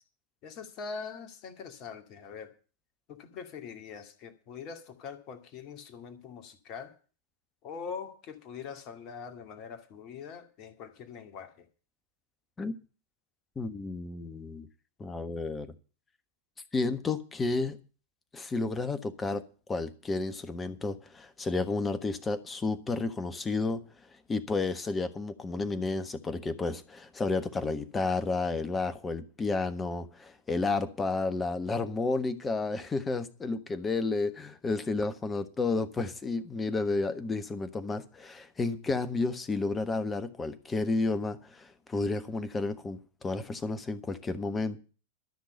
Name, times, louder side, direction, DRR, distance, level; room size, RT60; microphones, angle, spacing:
voice 1, 0.4-2.5 3.1-6.9 7.6-11.7, left 6 dB, 40° left, 2.2 m, -43 dB
voice 2, 13.5-14.7 15.0-15.7 16.7-17.8 18.3-19.4 19.7-23.8 24.3-44.8, left 3 dB, 15° left, 1.4 m, -31 dB
13.0 x 6.1 x 9.5 m
figure-of-eight pair, 90°, 0 cm